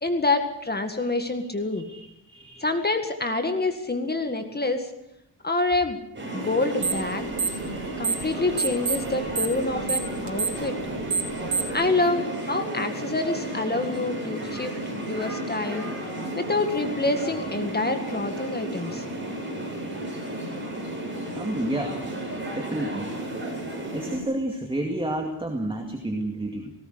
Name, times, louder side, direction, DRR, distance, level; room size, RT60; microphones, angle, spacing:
voice 1, 0.0-1.9 2.6-4.9 5.4-6.0 6.3-7.3 8.0-10.8 11.7-14.8 15.1-15.9 16.4-19.0, left 2 dB, 25° left, 6 dB, 1.9 m, -27 dB
voice 2, 1.9-2.7 21.3-22.0 22.5-23.1 23.9-26.7, right 1 dB, 15° right, 3 dB, 2.3 m, -30 dB
sound 1, 6.1-24.2, right 1 dB, 30° right, 7.8 m, -33 dB
sound 2, 6.8-7.1 7.3-8.3 8.6-11.8, right 5 dB, 70° right, 3.5 m, -26 dB
18.5 x 18.0 x 8.0 m, 0.82 s
wide cardioid pair, 125°, 38 cm